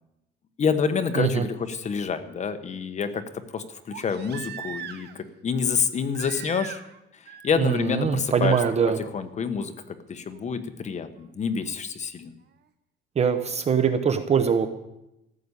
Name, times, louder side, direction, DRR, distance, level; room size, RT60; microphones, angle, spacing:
voice 1, 0.6-6.8 7.2-8.6 9.0-12.3, left 6 dB, 35° left, 8 dB, 1.2 m, -28 dB
Crying sobbing, 3.9-5.2 6.1-7.0 7.3-7.8 8.4-8.7 10.3-10.4, right 8 dB, 55° right, 1.1 m, -40 dB
voice 2, 7.6-9.0 13.2-14.7, right 7 dB, 30° right, 8 dB, 0.9 m, -22 dB
14.5 x 6.9 x 9.8 m, 0.89 s
cardioid pair, 140°, 20 cm